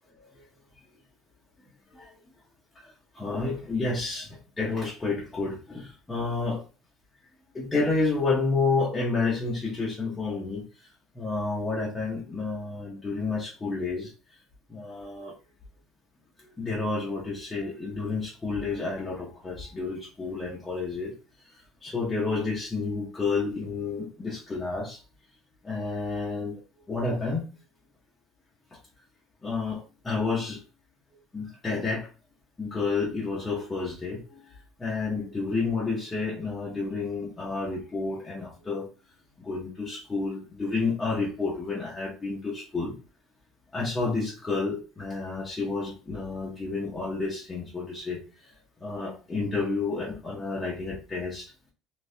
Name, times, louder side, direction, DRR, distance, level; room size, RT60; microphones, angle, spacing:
voice 1, 3.1-4.3 4.6-6.6 7.5-10.6 11.2-14.1 14.7-15.4 16.6-21.1 21.8-25.0 25.6-26.5 26.9-27.4 29.4-30.6 31.3-32.1 32.6-34.4 34.8-38.9 39.4-42.9 43.7-48.2 48.8-51.5, left 3 dB, 10° left, -4 dB, 0.7 m, -30 dB
3.4 x 2.9 x 2.6 m, 0.34 s
cardioid pair, 170°, 0 cm